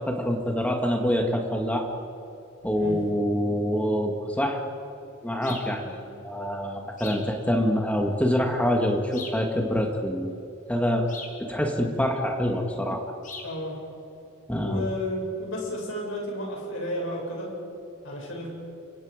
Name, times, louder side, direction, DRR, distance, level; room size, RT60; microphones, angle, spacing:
voice 1, 0.0-1.9 2.6-4.6 5.2-10.4 10.7-11.1 11.5-13.0 14.5-14.9, equal, 5° left, 2 dB, 2.1 m, -26 dB
sound 1, 5.4-5.8 7.0-7.3 9.1-9.5 11.1-11.4 13.2-13.6, left 4 dB, 40° left, 2.9 m, -40 dB
voice 2, 13.4-13.8 14.6-17.5 18.0-18.5, left 1 dB, 65° left, -1 dB, 7.2 m, -32 dB
29.5 x 25.0 x 5.2 m, 2.7 s
head